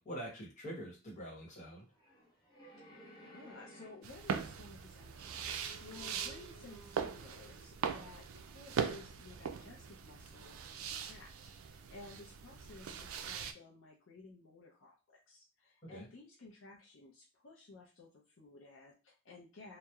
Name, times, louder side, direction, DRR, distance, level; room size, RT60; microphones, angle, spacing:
voice 1, 0.0-1.8 15.8-16.1, equal, 35° left, -3 dB, 1.0 m, -45 dB
sound 1, 1.9-4.4 4.9-7.2, right 2 dB, 20° left, 0.7 m, -57 dB
voice 2, 2.6-11.3 11.6-19.8, left 3 dB, 70° left, -2 dB, 0.5 m, -55 dB
sound 2, 4.0-13.5, right 7 dB, 90° right, 0.3 m, -41 dB
2.9 x 2.1 x 2.3 m, 0.33 s
head